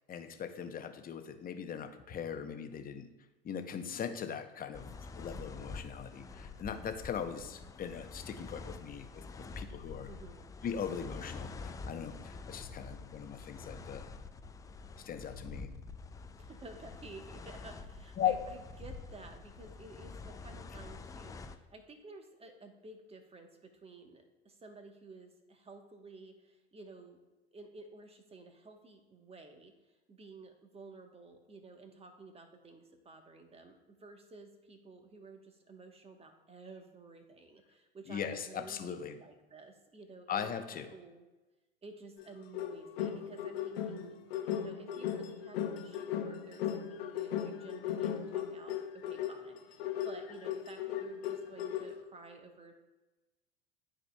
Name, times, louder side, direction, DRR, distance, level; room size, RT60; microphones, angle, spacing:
voice 1, 0.1-3.1 3.4-10.1 10.6-14.1 15.0-15.7 18.2-18.3 38.1-39.1 40.3-40.9, left 8 dB, 30° left, 8 dB, 0.8 m, -39 dB
sound 1, 4.7-21.6, left 4 dB, 10° left, 0.3 m, -47 dB
voice 2, 10.0-10.5 16.4-27.2 27.5-29.7 30.1-41.2 41.8-44.2 44.4-52.7, right 3 dB, 20° right, 5 dB, 1.1 m, -53 dB
sound 2, 42.2-52.0, left 9 dB, 70° left, 0.9 m, -37 dB
12.0 x 5.0 x 2.3 m, 1.1 s
hypercardioid pair, 80°, 31 cm